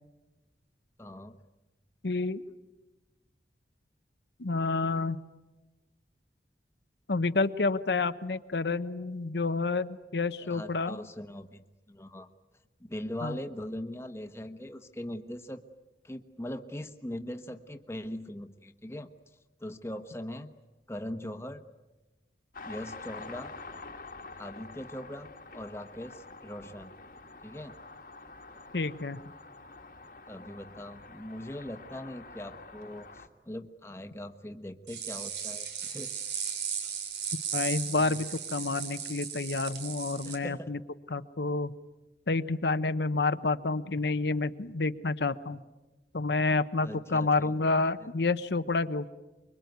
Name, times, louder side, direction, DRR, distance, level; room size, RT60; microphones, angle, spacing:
voice 1, 1.0-1.4 10.4-12.3 12.8-15.6 16.0-19.1 19.6-20.5 20.9-21.6 22.7-23.5 24.4-26.9 27.4-27.7 30.3-36.1 40.2-40.7 46.8-47.5 48.0-48.1, left 1 dB, 15° left, 7 dB, 1.1 m, -41 dB
voice 2, 2.0-2.4 4.4-5.2 7.1-11.0 13.2-13.4 28.7-29.2 37.5-40.8 41.1-41.7 42.3-45.6 46.1-49.1, left 3 dB, 75° left, 11 dB, 0.9 m, -29 dB
sound 1, 22.5-33.3, left 3 dB, 50° left, 1.5 m, -47 dB
sound 2, 34.9-40.4, right 7 dB, 80° right, 3.5 m, -36 dB
24.5 x 23.5 x 9.4 m, 1.1 s
head